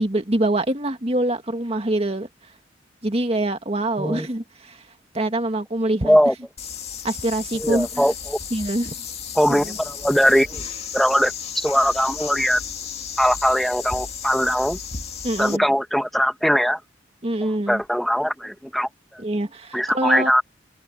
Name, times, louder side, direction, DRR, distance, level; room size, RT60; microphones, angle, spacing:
voice 1, 0.0-2.3 3.0-4.8 5.1-6.2 7.0-7.9 8.5-8.9 9.5-9.8 15.2-15.7 17.2-17.8 19.2-20.3, right 1 dB, 35° right, 2.0 m, -24 dB
voice 2, 6.0-6.3 7.5-8.4 9.3-10.6 10.9-12.6 13.2-14.8 15.4-16.8 17.7-18.9 19.7-20.4, equal, ahead, 1.5 m, -20 dB
sound 1, 6.6-15.6, left 7 dB, 35° left, 2.2 m, -34 dB
head